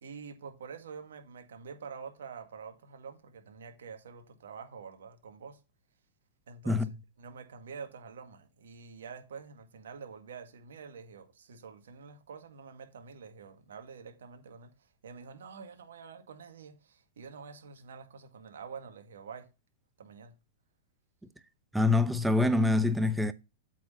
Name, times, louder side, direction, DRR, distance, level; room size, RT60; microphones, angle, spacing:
voice 1, 0.0-5.6 6.5-6.9 7.2-19.5 20.0-20.3, right 6 dB, 85° right, 1.7 m, -47 dB
voice 2, 21.7-23.3, left 2 dB, 5° right, 0.8 m, -25 dB
8.3 x 4.4 x 5.5 m
hypercardioid pair, 125°, 0 cm